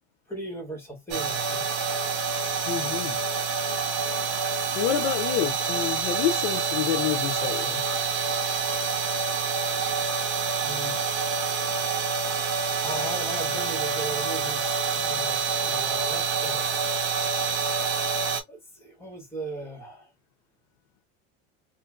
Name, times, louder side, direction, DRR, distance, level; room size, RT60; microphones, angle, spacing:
voice 1, 0.3-1.8 10.6-11.0 12.8-16.6 18.5-20.1, right 1 dB, 5° left, 1.6 m, -38 dB
sound 1, 1.1-18.4, right 5 dB, 65° right, 1.2 m, -27 dB
voice 2, 2.7-3.2 4.7-7.8, left 11 dB, 60° left, 0.5 m, -28 dB
2.8 x 2.5 x 2.4 m
cardioid pair, 140°, 33 cm